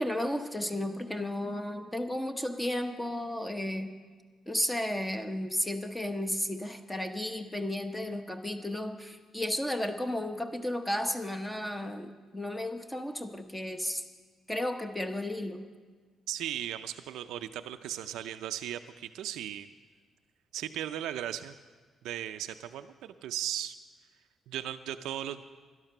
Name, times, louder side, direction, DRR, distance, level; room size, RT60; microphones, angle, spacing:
voice 1, 0.0-3.9 4.5-14.0 14.5-15.6, left 1 dB, 10° left, 6 dB, 0.9 m, -33 dB
voice 2, 16.3-19.7 20.5-21.6 22.0-23.8 24.5-25.4, right 11 dB, 90° right, 9 dB, 0.4 m, -37 dB
12.0 x 11.0 x 6.6 m, 1.5 s
cardioid pair, 90°, 0 cm